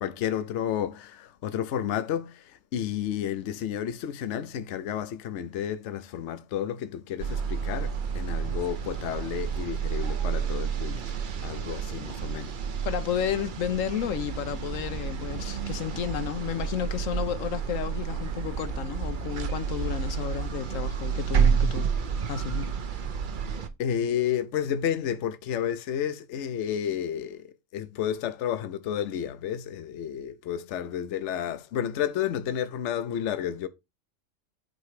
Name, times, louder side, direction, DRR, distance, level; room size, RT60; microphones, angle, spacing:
voice 1, 0.0-12.5 23.8-33.7, left 9 dB, 70° left, 0.9 m, -31 dB
sound 1, 7.2-23.7, right 6 dB, 45° right, 0.7 m, -30 dB
voice 2, 12.9-21.9 22.3-22.7, left 9 dB, 85° left, 1.1 m, -32 dB
9.1 x 3.0 x 4.8 m
omnidirectional pair, 1.3 m